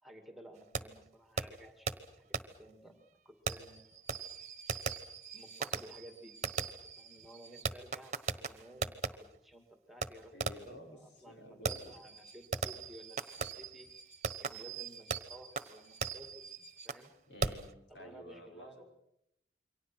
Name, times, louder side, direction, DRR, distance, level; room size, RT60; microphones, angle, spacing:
voice 1, 0.0-3.9 5.3-6.3 7.0-13.9 14.4-16.5 16.8-17.1 17.9-18.8, right 1 dB, ahead, 6 dB, 2.3 m, -55 dB
Fireworks, 0.7-0.8 1.4-1.5 1.9-2.0 2.3-2.4 3.5-9.1 10.0-10.1 10.4-10.7 11.7-17.1 17.4-17.7, right 4 dB, 40° right, 1.2 m, -39 dB
voice 2, 10.3-12.1 17.3-18.8, equal, 85° left, 2 dB, 5.8 m, -52 dB
28.0 x 23.5 x 6.1 m, 0.79 s
head